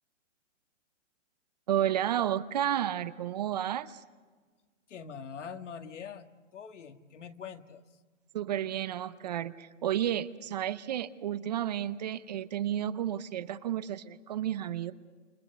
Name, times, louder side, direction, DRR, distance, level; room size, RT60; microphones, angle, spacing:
voice 1, 1.7-4.0 8.3-14.9, right 11 dB, 35° right, 15 dB, 0.7 m, -32 dB
voice 2, 4.9-7.8, left 6 dB, 75° left, 7 dB, 1.9 m, -44 dB
28.0 x 23.5 x 6.8 m, 1.4 s
hypercardioid pair, 165°, 37 cm